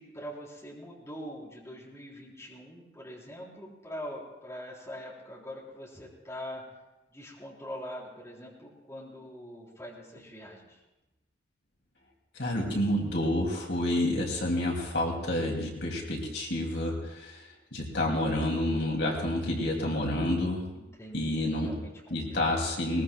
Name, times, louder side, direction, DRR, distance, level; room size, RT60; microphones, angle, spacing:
voice 1, 0.0-6.6 7.1-10.8 20.7-22.6, equal, 15° left, -5 dB, 3.9 m, -43 dB
voice 2, 12.3-17.4 17.7-20.6 21.1-21.8 22.1-23.0, left 1 dB, 75° left, -1 dB, 2.8 m, -29 dB
22.0 x 20.5 x 2.4 m, 1.0 s
head